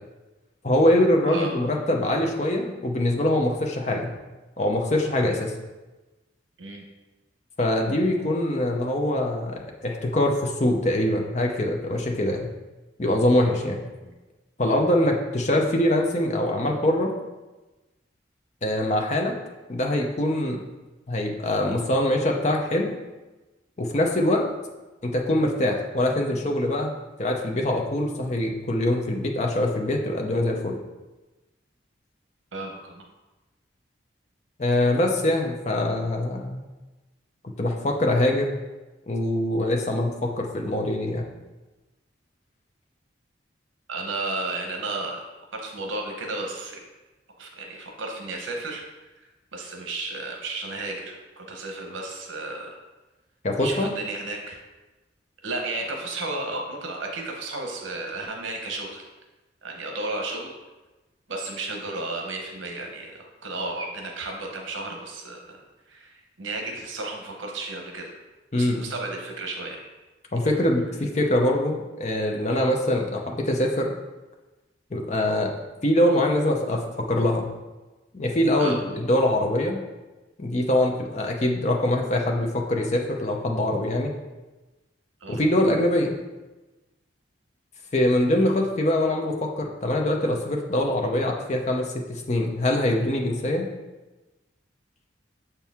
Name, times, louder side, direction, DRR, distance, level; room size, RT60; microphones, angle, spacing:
voice 1, 0.6-4.1 4.6-5.5 7.6-12.5 13.0-13.8 14.6-17.1 18.6-19.3 19.7-20.6 21.1-22.9 23.8-24.5 25.0-26.9 27.2-30.8 34.6-36.7 37.4-38.5 39.1-41.3 53.4-53.9 68.5-68.8 70.3-73.9 74.9-75.6 75.8-77.5 78.1-79.8 80.4-84.1 85.3-86.1 87.9-93.7, left 1 dB, 35° left, 1 dB, 0.6 m, -23 dB
voice 2, 1.3-1.6 6.6-6.8 14.0-14.1 32.5-33.0 43.9-45.2 45.5-46.8 47.4-48.8 49.5-52.7 53.6-54.6 55.4-59.0 59.6-60.5 61.3-65.6 65.9-68.2 68.5-69.8 78.6-78.8 85.2-85.4 88.4-88.5, right 2 dB, 90° right, 2 dB, 0.9 m, -33 dB
6.8 x 4.4 x 3.5 m, 1.1 s
head